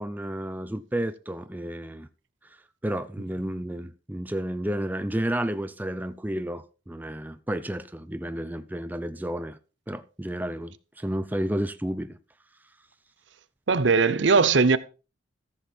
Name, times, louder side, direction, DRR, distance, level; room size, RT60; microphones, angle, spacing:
voice 1, 0.0-2.1 2.8-9.6 9.9-12.2, right 1 dB, 10° right, 0.5 m, -31 dB
voice 2, 13.7-14.8, right 4 dB, 70° right, 0.8 m, -19 dB
14.0 x 7.2 x 4.4 m
head